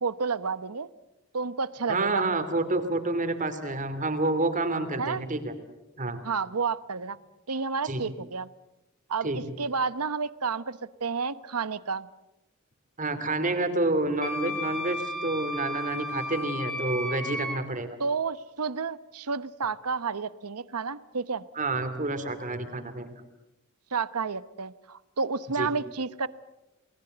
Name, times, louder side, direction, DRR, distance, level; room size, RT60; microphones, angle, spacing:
voice 1, 0.0-0.9 1.3-2.3 5.0-5.2 6.2-7.2 7.5-8.5 9.1-12.1 18.0-21.4 23.9-26.3, right 5 dB, 90° right, 15 dB, 0.9 m, -30 dB
voice 2, 1.9-5.5 6.0-6.2 7.8-8.0 9.2-9.4 13.0-17.9 21.5-23.1 25.6-25.7, right 2 dB, 35° right, 8 dB, 2.9 m, -28 dB
Wind instrument woodwind instrument, 14.2-17.6, left 1 dB, 5° left, 2.8 m, -34 dB
29.5 x 20.0 x 7.9 m, 0.98 s
head